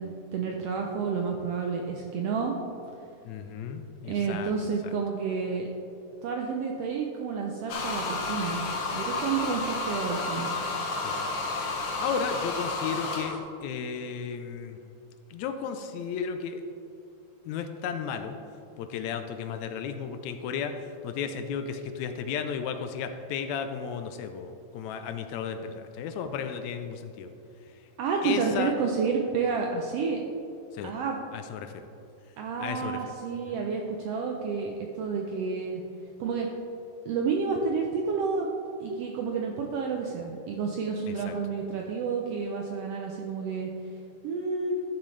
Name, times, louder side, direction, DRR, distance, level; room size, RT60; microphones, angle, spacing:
voice 1, 0.0-2.5 4.0-5.7 6.2-8.6 8.9-10.5 28.0-30.2 30.8-31.2 32.4-35.8 36.2-36.5 37.0-38.5 38.8-43.7 44.2-44.7, right 5 dB, 90° right, 1 dB, 1.3 m, -30 dB
voice 2, 3.3-4.5 11.0-14.8 15.3-16.6 17.5-18.4 18.8-20.7 21.0-27.3 28.2-28.7 30.7-30.9 31.3-31.9 32.6-33.0 41.1-41.4, left 7 dB, 80° left, 7 dB, 1.7 m, -34 dB
sound 1, 7.7-13.4, left 3 dB, 60° left, 1.7 m, -31 dB
12.5 x 6.9 x 3.2 m, 2.6 s
omnidirectional pair, 3.5 m